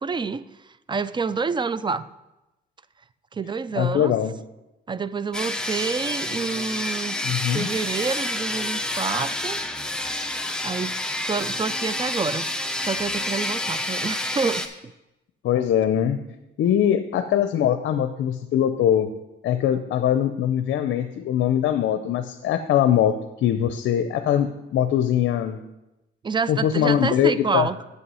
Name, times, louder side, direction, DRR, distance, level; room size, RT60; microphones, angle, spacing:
voice 1, 0.0-0.5 0.9-2.1 3.3-4.1 4.9-9.6 10.6-12.5 12.8-14.9 26.2-27.8, right 5 dB, 25° right, 16 dB, 0.4 m, -28 dB
voice 2, 3.8-4.3 7.2-7.7 15.4-16.2 16.6-19.1 19.4-25.6 26.5-27.7, left 10 dB, 70° left, 9 dB, 0.6 m, -22 dB
sound 1, 5.3-14.7, left 1 dB, 5° left, 0.8 m, -28 dB
7.9 x 5.6 x 5.6 m, 0.96 s
cardioid pair, 90°, 20 cm